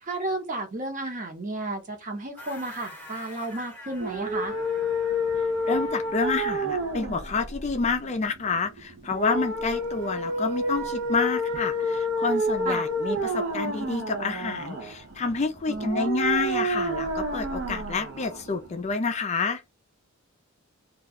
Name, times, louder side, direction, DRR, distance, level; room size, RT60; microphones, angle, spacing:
voice 1, 0.0-4.5 12.6-12.9 15.7-16.1, right 2 dB, 40° right, 0.9 m, -32 dB
sound 1, 2.4-6.8, left 1 dB, 10° left, 0.9 m, -46 dB
sound 2, 3.9-18.9, equal, 60° right, 0.6 m, -29 dB
voice 2, 5.6-19.6, left 4 dB, 30° left, 0.4 m, -28 dB
2.3 x 2.2 x 3.4 m
head